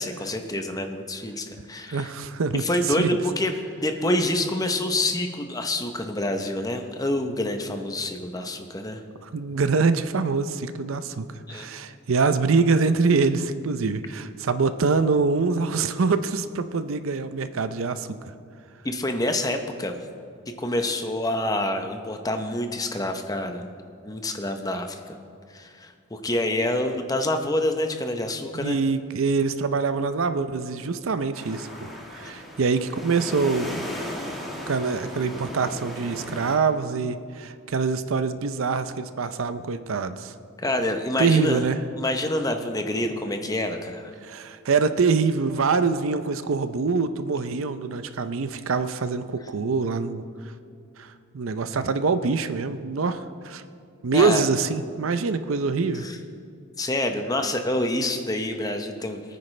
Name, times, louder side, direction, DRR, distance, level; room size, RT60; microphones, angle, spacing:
voice 1, 0.0-2.1 2.5-3.5 3.8-9.0 11.5-11.7 18.8-20.0 20.6-23.7 24.0-25.2 25.5-28.8 32.2-32.3 40.6-41.7 42.0-44.1 54.1-54.5 55.9-56.2 56.8-59.2, left 1 dB, 15° left, 5 dB, 0.8 m, -27 dB
voice 2, 1.9-2.6 3.0-3.2 9.2-18.1 28.5-31.7 32.1-33.8 34.7-40.3 41.2-41.8 44.2-50.3 51.0-51.1 51.3-53.6 54.0-56.1, right 4 dB, 70° right, 11 dB, 0.5 m, -24 dB
sound 1, 31.3-36.6, equal, ahead, 1.7 m, -36 dB
22.0 x 9.4 x 3.3 m, 2.3 s
head